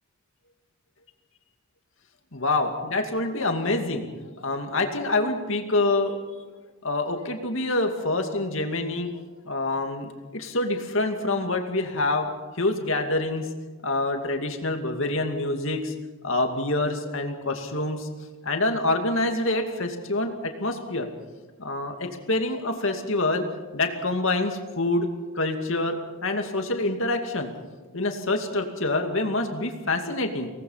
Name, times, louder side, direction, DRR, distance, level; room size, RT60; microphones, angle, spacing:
voice 1, 2.3-4.1 4.4-6.2 6.8-9.1 9.4-12.3 12.5-13.5 13.8-15.9 16.2-18.1 18.4-20.3 20.6-21.1 21.6-23.4 23.7-25.1 25.4-26.0 26.2-27.5 27.9-30.5, left 2 dB, 60° left, 4 dB, 2.5 m, -26 dB
25.0 x 18.5 x 5.7 m, 1.3 s
head